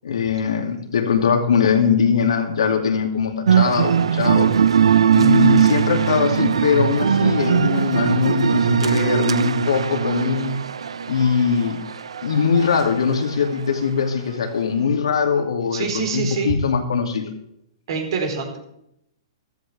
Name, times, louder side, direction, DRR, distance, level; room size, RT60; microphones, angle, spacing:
voice 1, 0.0-4.5 5.1-10.6 11.1-11.8 12.2-17.3, left 6 dB, 85° left, 3 dB, 2.5 m, -21 dB
sound 1, 3.5-12.9, right 8 dB, 90° right, 0.6 m, -19 dB
voice 2, 15.7-16.5 17.9-18.6, right 5 dB, 65° right, 3 dB, 4.2 m, -25 dB
14.5 x 13.5 x 3.4 m, 0.78 s
hypercardioid pair, 130°, 3 cm